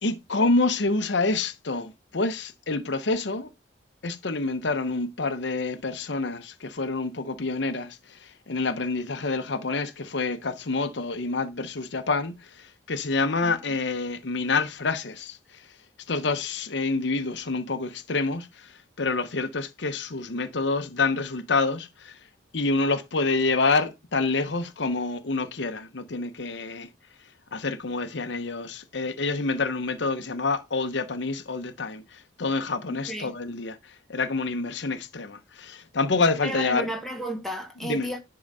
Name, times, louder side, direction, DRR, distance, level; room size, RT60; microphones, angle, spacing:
voice 1, 0.0-3.5 4.0-15.4 16.1-22.2 22.5-26.9 27.5-36.9 37.8-38.1, left 3 dB, 65° left, 0.9 m, -27 dB
voice 2, 32.9-33.3 36.4-38.2, right 1 dB, ahead, 1.7 m, -32 dB
11.0 x 3.9 x 5.4 m
head